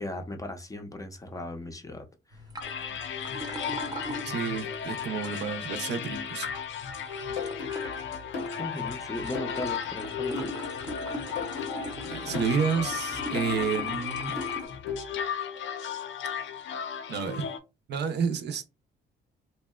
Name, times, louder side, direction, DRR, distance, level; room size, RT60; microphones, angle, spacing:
voice 1, 0.0-2.4 8.6-10.5, left 1 dB, 15° left, 0.5 m, -37 dB
sound 1, 2.3-14.7, left 1 dB, 20° right, 0.7 m, -42 dB
sound 2, 2.6-17.6, left 7 dB, 70° left, 0.5 m, -35 dB
voice 2, 4.2-6.5 12.1-14.3 17.1-17.5 17.9-18.7, right 6 dB, 60° right, 0.5 m, -30 dB
sound 3, 7.4-15.2, left 3 dB, 90° left, 0.9 m, -39 dB
2.7 x 2.1 x 2.2 m
cardioid pair, 90°, 20 cm